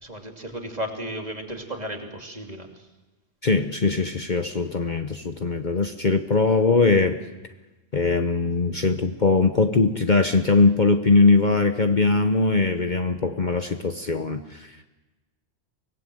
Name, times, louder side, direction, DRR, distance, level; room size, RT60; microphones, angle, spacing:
voice 1, 0.0-2.7, equal, 35° right, 2 dB, 2.8 m, -34 dB
voice 2, 3.4-7.2 7.9-14.7, left 3 dB, 40° left, 6 dB, 1.1 m, -21 dB
25.0 x 18.5 x 7.8 m, 1.1 s
omnidirectional pair, 1.2 m